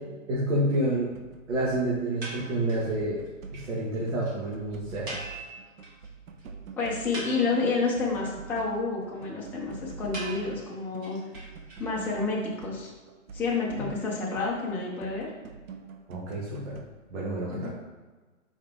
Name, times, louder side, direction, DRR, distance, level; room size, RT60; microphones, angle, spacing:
voice 1, 0.3-1.1 1.5-3.3 3.5-5.1 16.1-16.8 17.1-17.7, right 1 dB, 65° right, -5 dB, 1.8 m, -28 dB
sound 1, 0.7-0.9 1.1-2.5 2.8-4.2 4.5-16.8, right 5 dB, 85° right, 1.0 m, -46 dB
sound 2, 2.2-2.9 3.3-3.4 3.5-3.7 3.9-4.0 4.2-4.3 5.1-6.1 6.4-6.5 6.9-7.9 10.1-12.1, right 2 dB, 20° right, 1.6 m, -40 dB
voice 2, 6.8-11.2 11.8-12.9 13.3-15.3 17.5-17.7, left 4 dB, 5° left, -5 dB, 0.6 m, -29 dB
5.4 x 4.7 x 3.6 m, 1.3 s
hypercardioid pair, 150°, 40 cm